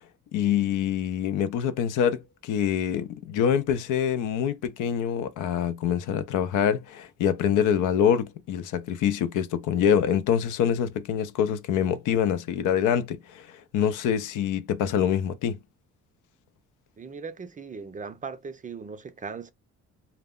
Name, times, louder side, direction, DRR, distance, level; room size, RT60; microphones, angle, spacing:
voice 1, 0.3-15.6, left 8 dB, 85° left, 0.5 m, -25 dB
voice 2, 17.0-19.5, right 5 dB, 25° right, 0.4 m, -38 dB
2.2 x 2.0 x 3.5 m
cardioid pair, 90°, 30 cm